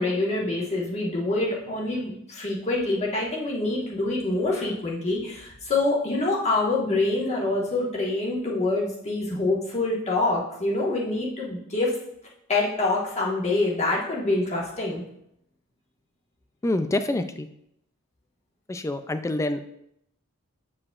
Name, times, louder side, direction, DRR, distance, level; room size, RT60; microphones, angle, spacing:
voice 1, 0.0-12.0 12.5-15.0, left 2 dB, 30° left, -5 dB, 1.5 m, -26 dB
voice 2, 16.6-17.5 18.7-19.6, left 2 dB, 15° left, 10 dB, 0.3 m, -26 dB
8.4 x 4.8 x 2.4 m, 0.75 s
head